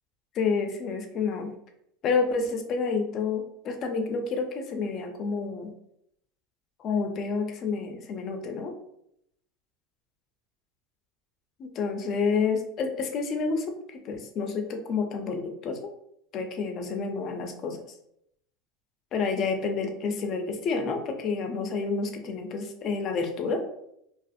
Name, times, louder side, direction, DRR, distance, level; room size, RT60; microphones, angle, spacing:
voice 1, 0.3-1.5 2.0-5.7 6.8-8.7 11.6-15.8 16.3-17.8 19.1-23.6, left 4 dB, 45° left, 5 dB, 0.5 m, -29 dB
2.5 x 2.4 x 2.4 m, 0.75 s
supercardioid pair, 105°, 0 cm